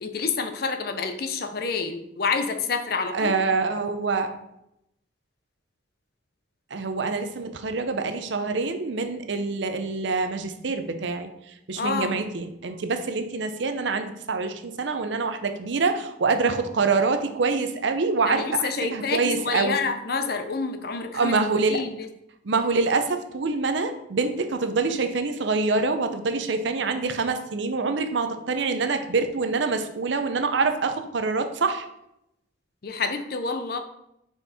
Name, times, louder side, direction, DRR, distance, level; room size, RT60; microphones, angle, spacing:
voice 1, 0.0-3.3 11.8-12.1 18.3-21.3 21.7-22.1 32.8-33.8, left 4 dB, 50° left, 8 dB, 0.6 m, -28 dB
voice 2, 3.1-4.3 6.7-11.3 11.7-19.8 21.1-21.8 22.4-31.9, right 4 dB, 70° right, 7 dB, 0.6 m, -25 dB
5.7 x 4.5 x 4.1 m, 0.82 s
head